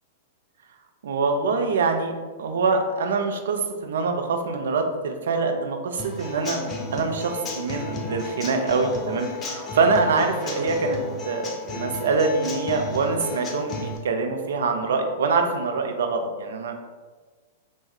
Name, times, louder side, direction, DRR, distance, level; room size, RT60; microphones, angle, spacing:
voice 1, 1.0-2.1 2.4-6.6 6.9-16.7, right 4 dB, 65° right, 4 dB, 0.4 m, -24 dB
Human voice / Acoustic guitar / Drum, 6.0-14.0, left 2 dB, 25° left, 0.6 m, -33 dB
3.0 x 2.0 x 3.5 m, 1.4 s
figure-of-eight pair, 100°, 0 cm